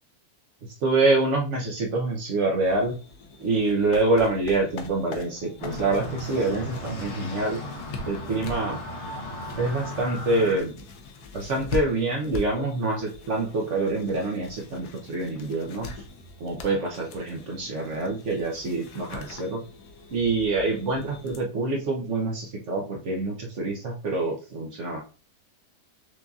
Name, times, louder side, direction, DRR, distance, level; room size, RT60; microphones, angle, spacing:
voice 1, 0.8-2.9 3.4-7.6 8.1-8.8 9.6-10.8 11.3-15.9 16.4-19.6 20.1-25.0, right 2 dB, 55° right, 0 dB, 0.9 m, -26 dB
sound 1, 2.6-21.4, left 3 dB, 75° left, 1.2 m, -42 dB
sound 2, 5.6-10.6, left 2 dB, 50° left, 1.1 m, -36 dB
6.1 x 2.7 x 2.3 m, 0.36 s
omnidirectional pair, 1.7 m